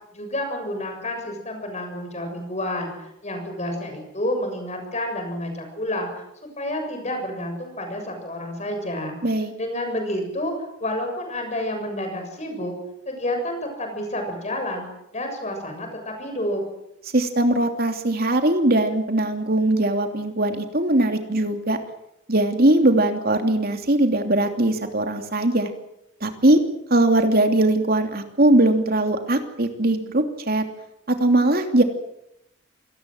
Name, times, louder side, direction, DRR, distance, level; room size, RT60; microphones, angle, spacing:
voice 1, 0.1-9.2 9.6-12.7 13.1-14.9 15.1-16.6, left 1 dB, 35° left, 5 dB, 7.1 m, -29 dB
voice 2, 9.2-9.5 17.1-21.8 22.3-25.7 26.2-26.6 26.9-30.6 31.1-31.8, right 1 dB, 50° right, 6 dB, 2.9 m, -20 dB
27.0 x 19.0 x 7.9 m, 0.82 s
head